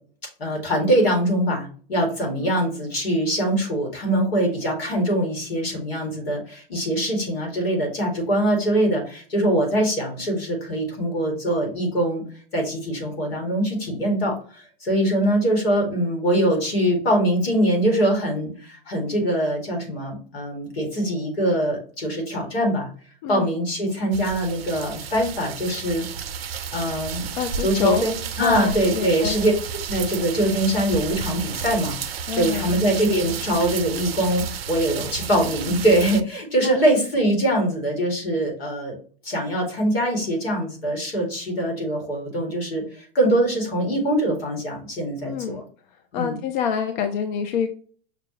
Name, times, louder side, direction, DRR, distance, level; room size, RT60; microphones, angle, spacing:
voice 1, 0.4-12.2 12.5-22.9 23.3-26.0 26.7-27.3 27.6-29.5 29.9-39.0 39.2-45.6 46.1-46.4, right 1 dB, 85° left, 1 dB, 2.0 m, -23 dB
sound 1, 24.1-36.2, right 7 dB, 80° right, 0.5 m, -32 dB
voice 2, 27.4-28.1 28.4-29.4 32.3-32.8 36.6-36.8 45.2-45.6 46.1-47.7, left 7 dB, 50° left, 6 dB, 0.6 m, -26 dB
5.9 x 2.3 x 2.9 m, 0.43 s
hypercardioid pair, 115°, 30 cm